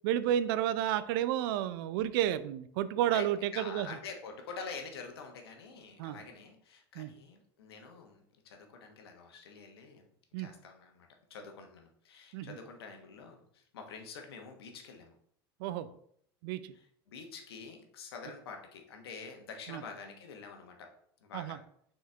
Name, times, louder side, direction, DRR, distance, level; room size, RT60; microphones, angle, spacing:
voice 1, 0.0-3.9 6.0-6.2 7.0-7.1 10.3-10.5 12.3-12.6 15.6-15.9 16.4-16.7 19.7-19.8 21.3-21.6, right 11 dB, 70° right, 14 dB, 0.5 m, -31 dB
voice 2, 3.1-10.1 10.4-15.2 16.7-20.9 21.2-21.6, left 5 dB, 80° left, 3 dB, 1.3 m, -47 dB
6.3 x 4.4 x 3.4 m, 0.68 s
hypercardioid pair, 90°, 13 cm